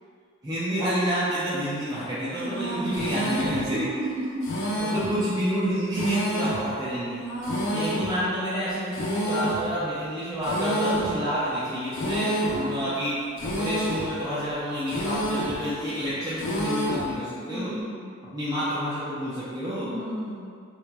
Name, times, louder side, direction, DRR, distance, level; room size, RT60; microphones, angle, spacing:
voice 1, 0.4-3.9 4.8-7.3 7.7-13.1 13.4-17.7 18.3-19.9, equal, 20° right, -12 dB, 0.4 m, -29 dB
voice 2, 2.4-3.0 3.7-4.5 5.0-5.1 7.2-7.8 12.4-12.8 17.5-18.1 19.8-20.5, right 1 dB, 55° right, -12 dB, 1.2 m, -33 dB
sound 1, 2.9-3.6 4.4-5.1 5.9-6.6 7.4-8.1 8.9-9.6 10.4-11.1 11.9-12.6 13.4-14.1 14.9-15.6 16.4-17.1, equal, 60° left, 0.5 m, -28 dB
2.9 x 2.9 x 2.2 m, 2.2 s
head